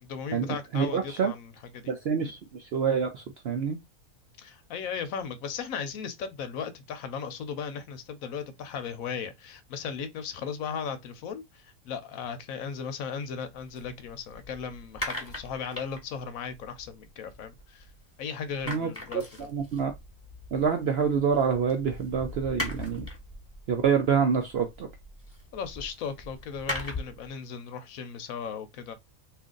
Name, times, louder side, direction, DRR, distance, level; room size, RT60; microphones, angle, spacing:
voice 1, 0.0-1.9 2.2-2.3 4.4-17.9 18.2-19.5 25.5-28.9, left 6 dB, 75° left, 1.0 m, -37 dB
voice 2, 0.7-1.3 1.9-3.8 18.7-18.9 19.4-19.9 20.5-23.1 23.7-24.9, right 6 dB, 65° right, 0.6 m, -26 dB
sound 1, 13.5-18.1 18.4-27.3, left 1 dB, 10° left, 1.2 m, -40 dB
2.8 x 2.5 x 3.7 m
omnidirectional pair, 1.5 m